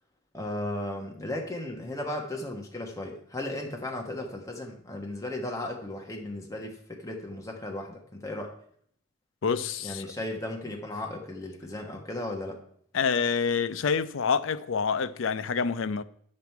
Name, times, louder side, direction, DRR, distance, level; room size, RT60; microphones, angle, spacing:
voice 1, 0.3-8.5 9.8-12.6, left 1 dB, 15° left, 1.4 m, -35 dB
voice 2, 9.4-10.1 12.9-16.0, left 6 dB, 85° left, 0.5 m, -27 dB
9.4 x 7.7 x 4.6 m
head